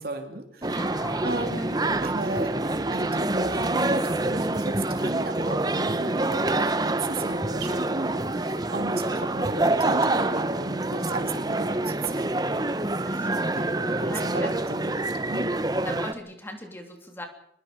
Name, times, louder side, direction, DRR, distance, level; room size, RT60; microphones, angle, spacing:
voice 1, 0.0-0.8 1.2-12.3 13.5-13.6 14.0-15.5, right 2 dB, 60° right, 5 dB, 2.9 m, -35 dB
sound 1, 0.6-16.1, right 2 dB, 20° right, 1.0 m, -26 dB
voice 2, 0.7-1.8 8.8-9.0 13.0-14.5 15.8-17.3, left 1 dB, 15° left, 3 dB, 3.2 m, -40 dB
23.5 x 22.5 x 5.2 m, 0.70 s
head